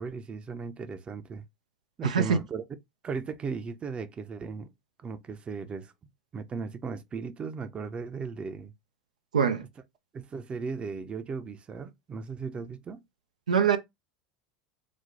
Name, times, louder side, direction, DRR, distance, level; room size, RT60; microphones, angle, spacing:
voice 1, 0.0-1.4 2.0-2.6 3.0-4.7 5.0-5.9 6.3-8.7 10.1-13.0, right 5 dB, 30° right, 0.6 m, -36 dB
voice 2, 2.0-2.4 9.3-9.7 13.5-13.8, right 7 dB, 85° right, 0.5 m, -23 dB
4.2 x 2.2 x 4.5 m
hypercardioid pair, 80°, 4 cm